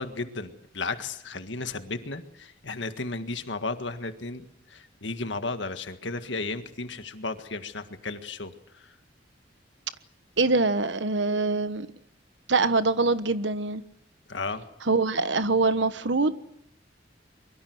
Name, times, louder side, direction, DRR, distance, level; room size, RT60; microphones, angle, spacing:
voice 1, 0.0-8.9 14.3-14.7, left 3 dB, 75° left, 1.8 m, -34 dB
voice 2, 10.4-11.9 12.5-13.8 14.9-16.4, right 3 dB, 75° right, 1.3 m, -24 dB
24.0 x 23.0 x 7.9 m
head